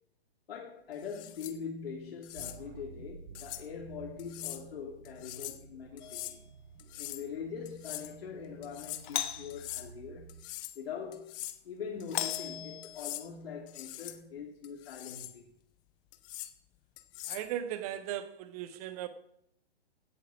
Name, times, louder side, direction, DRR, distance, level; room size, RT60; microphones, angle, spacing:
voice 1, 0.5-6.4 7.0-10.4 10.7-11.3 11.6-15.5, left 6 dB, 60° left, 2.8 m, -42 dB
sound 1, 1.0-1.6 2.2-2.6 3.4-3.7 4.2-4.6 5.1-5.6 6.0-6.4 6.8-7.3 7.7-8.1 8.6-9.0 9.5-9.9 10.3-10.8 11.1-11.6 12.0-12.5 12.8-13.3 13.7-14.2 14.6-15.4 16.1-16.5 17.0-17.5, left 16 dB, 15° left, 0.5 m, -43 dB
sound 2, 2.3-10.5, right 6 dB, 70° right, 1.9 m, -53 dB
Doorbell, 6.0-6.5 9.0-9.6 12.1-13.3, left 11 dB, 45° left, 1.1 m, -37 dB
voice 2, 17.3-19.1, right 11 dB, 35° right, 1.4 m, -37 dB
16.0 x 8.3 x 6.3 m
hypercardioid pair, 140°, 33 cm